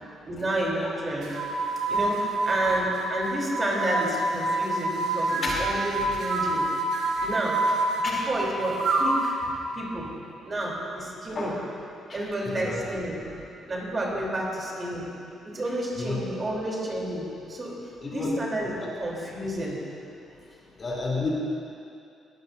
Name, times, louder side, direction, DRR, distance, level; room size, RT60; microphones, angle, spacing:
voice 1, 0.3-1.4 1.9-6.7 7.2-7.6 8.0-9.4 9.7-10.1 10.4-11.5 12.1-15.1 15.4-17.8 18.1-19.8, right 1 dB, 35° right, -4 dB, 3.5 m, -30 dB
sound 1, 1.2-9.4, right 2 dB, 75° right, 2.0 m, -27 dB
voice 2, 12.1-12.8 16.0-16.2 18.0-18.3 18.8-18.9 20.8-21.3, left 3 dB, 40° left, -4 dB, 3.3 m, -31 dB
21.0 x 13.0 x 2.7 m, 2.5 s
cardioid pair, 90°, 0 cm